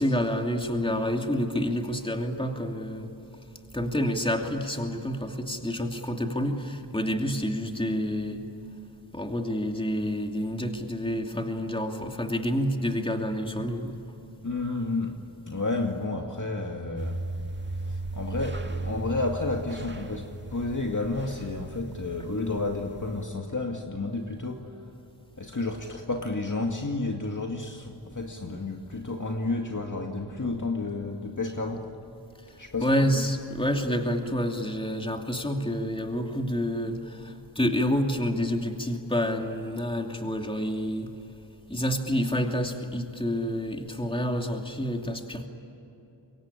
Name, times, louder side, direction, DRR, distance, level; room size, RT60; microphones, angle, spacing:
voice 1, 0.0-3.1 3.7-8.4 9.1-14.0 32.8-41.1 41.7-45.5, equal, 10° left, 3 dB, 2.8 m, -28 dB
voice 2, 14.4-15.2 15.5-17.2 17.9-24.7 25.4-31.9 32.6-32.9 33.1-33.2, left 3 dB, 40° left, 2 dB, 2.2 m, -31 dB
sound 1, 17.0-23.2, right 2 dB, 25° right, 2.0 m, -37 dB
25.5 x 23.0 x 10.0 m, 2.9 s
cardioid pair, 45°, 47 cm